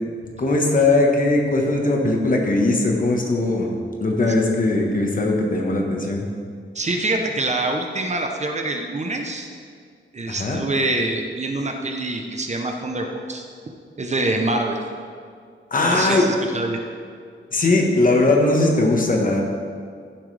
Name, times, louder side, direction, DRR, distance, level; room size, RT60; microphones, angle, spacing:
voice 1, 0.4-3.7 4.0-6.2 10.3-10.6 15.7-16.3 17.5-19.4, left 2 dB, 40° left, 0 dB, 1.3 m, -19 dB
voice 2, 6.7-9.5 10.1-13.4 14.0-14.8 15.9-16.8, right 2 dB, 35° right, 3 dB, 0.8 m, -25 dB
15.0 x 7.6 x 3.3 m, 2.2 s
wide cardioid pair, 165°, 21 cm